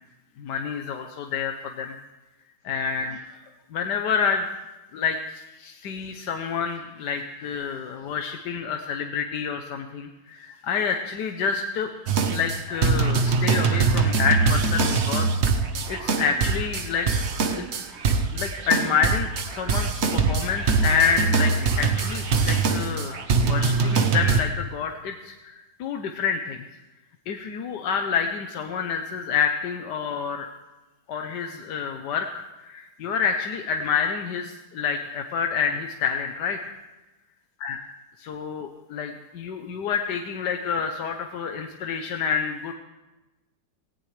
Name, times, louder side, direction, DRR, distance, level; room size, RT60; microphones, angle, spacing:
voice 1, 0.4-2.0 2.6-3.2 3.7-4.5 4.9-11.9 12.3-15.3 15.9-17.1 17.6-17.8 18.3-26.6 27.3-30.5 31.1-36.6 37.6-37.8 38.2-42.7, left 6 dB, 80° left, 4 dB, 1.5 m, -28 dB
sound 1, 12.1-24.4, right 4 dB, 50° right, 1.0 m, -23 dB
18.0 x 17.5 x 3.3 m, 1.1 s
omnidirectional pair, 1.8 m